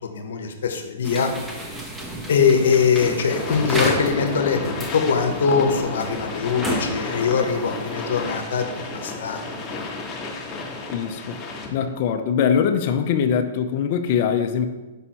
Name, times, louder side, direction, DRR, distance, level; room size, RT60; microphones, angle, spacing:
voice 1, 0.0-1.8 2.3-4.6 4.9-9.4 9.7-9.8, left 6 dB, 75° left, 6 dB, 0.9 m, -22 dB
sound 1, 1.0-8.2, right 1 dB, 10° right, 0.8 m, -33 dB
sound 2, 3.0-11.9, left 3 dB, 20° left, 1.0 m, -31 dB
voice 2, 10.9-11.4 11.7-14.7, left 7 dB, 50° left, 7 dB, 0.5 m, -22 dB
5.5 x 4.5 x 4.3 m, 1.1 s
hypercardioid pair, 140°, 0 cm